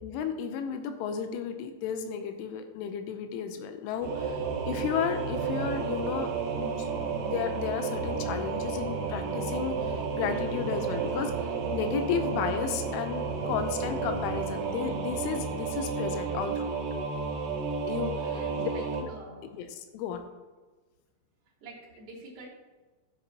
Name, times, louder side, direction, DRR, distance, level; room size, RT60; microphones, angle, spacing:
voice 1, 0.0-6.3 6.8-11.3 11.7-16.9 17.9-18.1 18.6-18.7 19.0-19.1 19.6-20.2, left 7 dB, 85° left, 7 dB, 3.1 m, -33 dB
Singing / Musical instrument, 4.0-19.0, right 5 dB, 70° right, 2.7 m, -32 dB
voice 2, 18.2-19.6 21.6-22.5, right 2 dB, 35° right, -7 dB, 3.2 m, -47 dB
12.5 x 8.2 x 2.9 m, 1.3 s
omnidirectional pair, 5.7 m